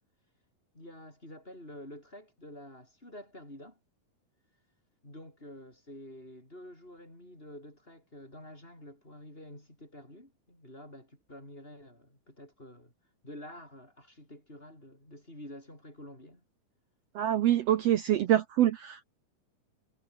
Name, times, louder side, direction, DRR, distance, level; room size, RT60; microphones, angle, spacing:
voice 1, 0.7-3.8 5.0-12.9 13.2-16.4, left 1 dB, 15° left, 7.6 m, -49 dB
voice 2, 17.1-19.0, right 12 dB, 70° right, 1.5 m, -25 dB
omnidirectional pair, 3.9 m